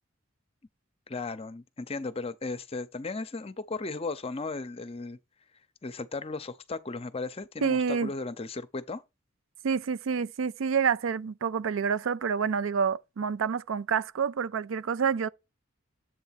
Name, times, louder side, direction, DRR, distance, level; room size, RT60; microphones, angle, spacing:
voice 1, 1.1-5.2 5.8-9.0, left 3 dB, 30° left, 0.6 m, -36 dB
voice 2, 7.6-8.1 9.6-15.3, right 6 dB, 75° right, 0.4 m, -28 dB
7.9 x 3.4 x 5.8 m
head